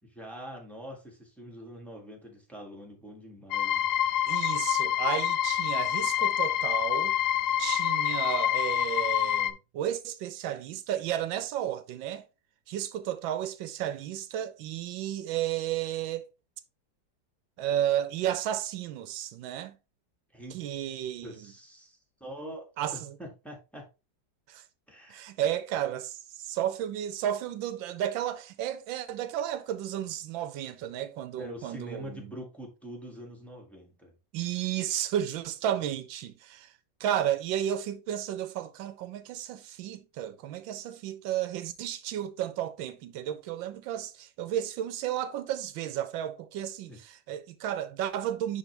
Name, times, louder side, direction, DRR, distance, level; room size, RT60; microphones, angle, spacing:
voice 1, 0.0-3.9 20.3-20.6 21.2-23.9 24.9-25.2 31.3-34.1 46.9-47.0, equal, ahead, 1.9 m, -44 dB
sound 1, 3.5-9.5, left 11 dB, 85° left, 0.7 m, -27 dB
voice 2, 4.3-7.2 7.6-12.3 12.7-16.3 17.6-19.8 20.5-21.5 22.8-23.1 24.5-24.6 25.1-32.3 34.3-36.7 37.0-48.6, right 11 dB, 90° right, 1.4 m, -33 dB
10.0 x 3.6 x 3.3 m
omnidirectional pair, 2.0 m